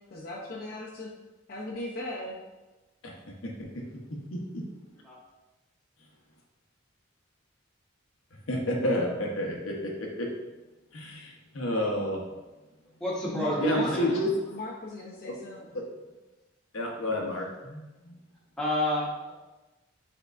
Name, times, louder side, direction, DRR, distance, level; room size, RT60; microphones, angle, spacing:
voice 1, 0.1-1.1 1.5-2.4 13.3-13.9 14.5-15.7, left 2 dB, 50° left, -5 dB, 0.6 m, -37 dB
voice 2, 3.4-3.8 4.5-4.6 8.5-10.3 10.9-12.2 13.6-14.3 15.2-15.3 15.7-15.8 16.7-18.1, left 1 dB, 85° left, -1 dB, 0.9 m, -30 dB
voice 3, 13.0-14.2 18.6-19.3, equal, 5° left, -7 dB, 1.1 m, -29 dB
5.8 x 3.6 x 2.5 m, 1.1 s
head